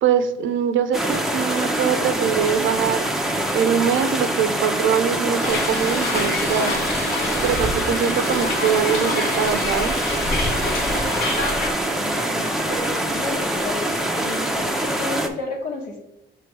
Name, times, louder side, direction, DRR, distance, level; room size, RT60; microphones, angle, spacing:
voice 1, 0.0-3.1 3.5-6.8 7.4-10.0, right 8 dB, 75° right, 10 dB, 0.6 m, -22 dB
sound 1, 0.9-15.3, right 1 dB, ahead, 0.7 m, -24 dB
Hiss, 5.4-11.7, left 2 dB, 75° left, 1.3 m, -27 dB
voice 2, 11.9-13.9 14.2-16.0, left 3 dB, 55° left, -5 dB, 1.2 m, -32 dB
6.1 x 3.3 x 4.7 m, 0.88 s
cardioid pair, 90°, 20 cm